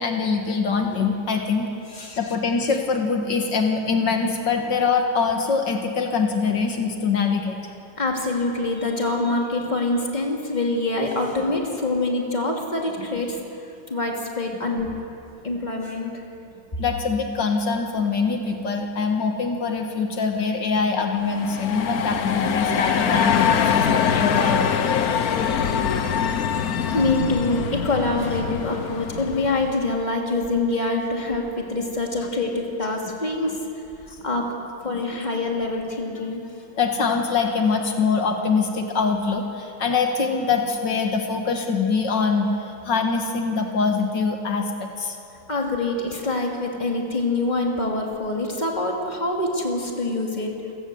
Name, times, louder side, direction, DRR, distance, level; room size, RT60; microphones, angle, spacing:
voice 1, 0.0-1.7 1.9-7.6 13.0-13.1 16.8-24.8 36.8-45.2, left 5 dB, 75° left, 3 dB, 2.2 m, -23 dB
voice 2, 8.0-13.4 13.9-15.0 15.4-16.1 26.9-33.5 34.2-34.4 34.8-36.4 45.5-50.5, left 2 dB, 25° left, 0 dB, 3.0 m, -25 dB
sound 1, 21.2-29.9, left 7 dB, 60° left, 1.4 m, -23 dB
28.5 x 17.5 x 7.9 m, 2.8 s
omnidirectional pair, 1.9 m